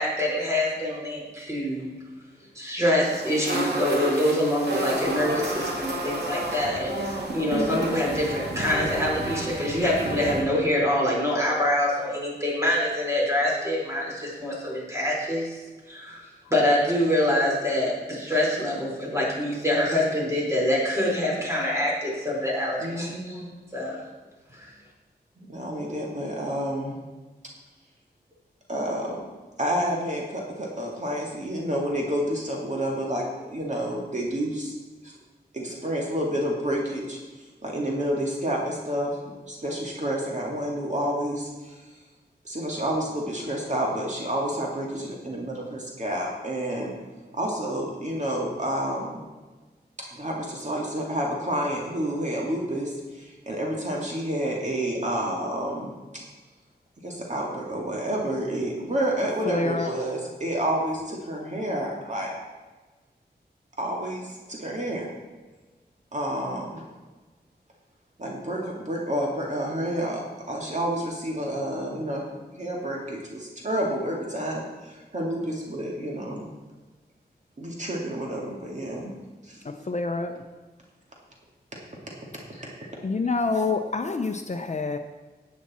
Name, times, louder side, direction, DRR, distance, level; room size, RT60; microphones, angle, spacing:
voice 1, 0.0-1.9 2.5-15.6 15.9-23.4 23.7-24.0 24.5-24.7, left 1 dB, 15° right, -4 dB, 4.4 m, -25 dB
sound 1, 3.0-10.4, right 1 dB, 75° right, 2.5 m, -31 dB
voice 2, 22.8-23.5 25.4-27.0 28.7-29.2 29.6-34.7 35.0-35.1 35.5-39.2 39.5-41.8 42.4-46.9 47.3-49.2 50.0-55.9 57.0-62.3 63.8-65.1 66.1-66.8 68.2-70.2 70.5-72.3 72.6-76.5 77.6-79.1 79.4-79.6 82.5-82.9 83.5-83.6, right 1 dB, 45° right, -2 dB, 2.2 m, -29 dB
voice 3, 59.4-59.9 79.6-80.4 83.0-85.0, left 3 dB, 40° left, 6 dB, 0.7 m, -27 dB
13.5 x 8.5 x 4.3 m, 1.3 s
wide cardioid pair, 90°, 17 cm